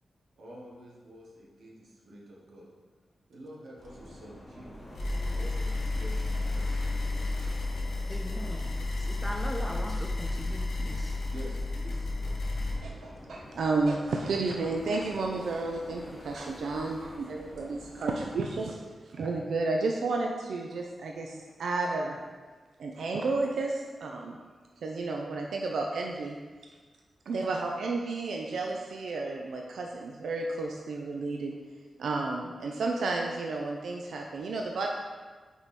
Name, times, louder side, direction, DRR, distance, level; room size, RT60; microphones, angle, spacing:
voice 1, 0.4-2.7 3.3-4.8 5.2-7.6 8.0-9.5 9.9-10.0 11.3-12.6 27.3-27.5, right 1 dB, 70° right, -3 dB, 1.4 m, -49 dB
sound 1, 3.8-18.7, left 1 dB, 15° left, 1.3 m, -47 dB
sound 2, 4.9-12.8, left 2 dB, 75° left, 1.3 m, -32 dB
voice 2, 8.1-11.2, equal, ahead, 1 dB, 0.5 m, -40 dB
voice 3, 12.8-18.8 19.1-22.2 22.8-24.4 24.8-26.4 27.3-31.6 32.0-34.9, right 3 dB, 90° right, 1 dB, 0.5 m, -32 dB
5.4 x 4.6 x 4.2 m, 1.4 s
wide cardioid pair, 170°, 0 cm